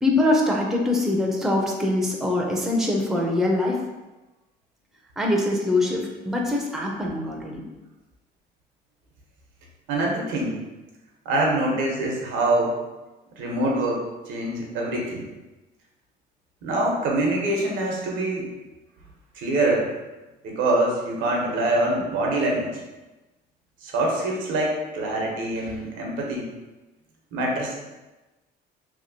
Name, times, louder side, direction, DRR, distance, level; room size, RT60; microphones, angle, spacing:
voice 1, 0.0-3.8 5.2-7.6, left 2 dB, ahead, -1 dB, 0.4 m, -23 dB
voice 2, 9.9-10.6 11.2-12.7 13.4-15.2 16.6-18.5 19.3-19.9 20.4-22.8 23.8-26.5 27.3-27.8, right 2 dB, 85° right, -1 dB, 0.8 m, -24 dB
2.8 x 2.8 x 2.7 m, 1.1 s
cardioid pair, 120°, 19 cm